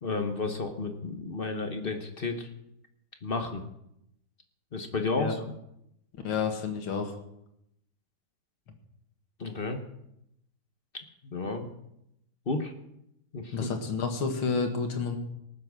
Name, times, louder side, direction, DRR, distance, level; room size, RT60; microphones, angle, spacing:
voice 1, 0.0-2.5 3.2-3.6 4.7-5.4 9.4-9.8 11.2-11.7 12.5-12.7 13.3-13.7, left 3 dB, 40° left, 6 dB, 0.9 m, -32 dB
voice 2, 6.2-7.2 13.5-15.2, left 5 dB, 70° left, 5 dB, 2.5 m, -30 dB
18.5 x 7.6 x 6.3 m, 0.80 s
omnidirectional pair, 2.4 m